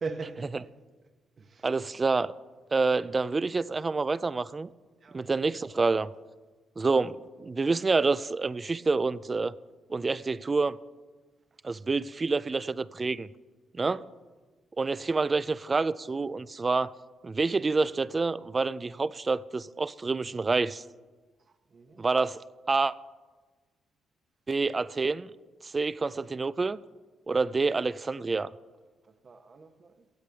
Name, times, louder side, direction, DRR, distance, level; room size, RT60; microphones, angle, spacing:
voice 1, 0.0-0.5 1.4-1.7 5.0-5.2 13.8-14.0 21.7-22.0 29.2-29.9, right 4 dB, 45° right, 1.0 m, -40 dB
voice 2, 1.6-2.3 2.7-4.7 5.1-6.1 6.8-9.6 9.9-10.8 11.6-13.3 13.7-14.1 14.8-16.9 17.2-20.8 22.0-22.4 22.7-22.9 24.5-25.3 25.6-26.8 27.3-28.5, right 3 dB, 30° right, 0.3 m, -27 dB
16.0 x 8.3 x 3.4 m
cardioid pair, 90°, 0 cm